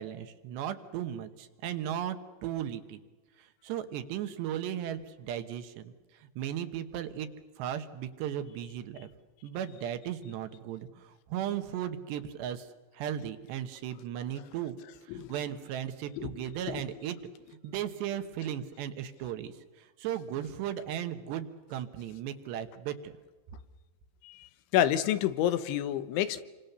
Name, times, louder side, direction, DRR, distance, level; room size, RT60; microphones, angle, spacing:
voice 1, 0.0-3.0 3.6-5.9 6.4-7.3 7.6-9.1 9.4-12.7 12.9-14.8 15.1-17.2 17.6-19.5 20.0-23.1, right 10 dB, 75° right, 9 dB, 3.4 m, -36 dB
voice 2, 16.7-17.0 24.2-24.5 24.7-26.4, left 11 dB, 85° left, 12 dB, 3.6 m, -29 dB
27.5 x 26.0 x 6.9 m, 1.2 s
omnidirectional pair, 5.2 m